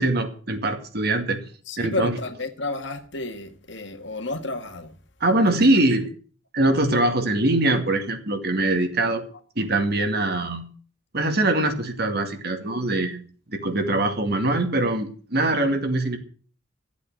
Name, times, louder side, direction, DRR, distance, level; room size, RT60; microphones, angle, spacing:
voice 1, 0.0-1.4 1.8-2.1 5.2-6.1 6.5-9.2 9.6-10.6 11.1-13.2 13.5-16.2, right 2 dB, 55° right, 2.2 m, -22 dB
voice 2, 1.7-5.0 5.4-5.8, left 2 dB, 65° left, 1.8 m, -31 dB
13.0 x 8.3 x 8.0 m
head